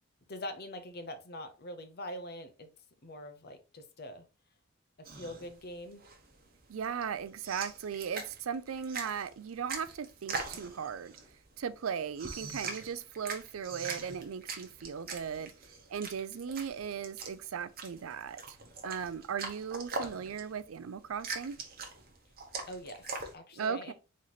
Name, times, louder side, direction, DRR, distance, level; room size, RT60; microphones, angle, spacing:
voice 1, 0.3-2.7 3.0-4.3 5.0-6.0 22.7-23.9, left 1 dB, 50° left, 0.8 m, -43 dB
sound 1, 5.0-23.3, right 4 dB, 45° right, 1.0 m, -42 dB
voice 2, 6.7-11.2 11.6-15.5 15.9-18.6 18.8-21.6 23.5-23.9, right 7 dB, 75° right, 0.4 m, -37 dB
4.2 x 3.1 x 4.0 m
head